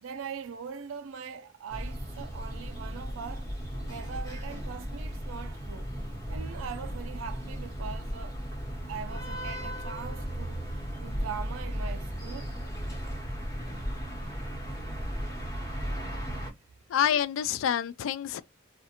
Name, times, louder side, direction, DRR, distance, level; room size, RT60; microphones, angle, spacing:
voice 1, 0.0-5.9 6.3-8.4 8.9-12.6, right 6 dB, 85° right, 0.4 m, -41 dB
sound 1, 1.7-16.5, equal, 15° left, 0.9 m, -36 dB
voice 2, 16.9-18.4, left 9 dB, 80° left, 0.3 m, -27 dB
2.4 x 2.1 x 2.8 m
head